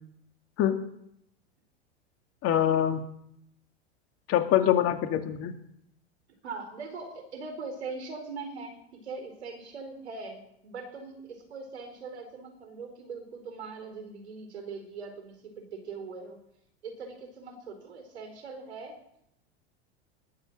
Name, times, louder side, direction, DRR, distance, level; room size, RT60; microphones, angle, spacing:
voice 1, 2.4-3.0 4.3-5.5, left 10 dB, 45° left, 7 dB, 2.2 m, -24 dB
voice 2, 6.4-16.4 16.8-18.9, right 4 dB, 85° right, 5 dB, 4.6 m, -41 dB
19.5 x 7.6 x 7.6 m, 0.76 s
hypercardioid pair, 95°, 33 cm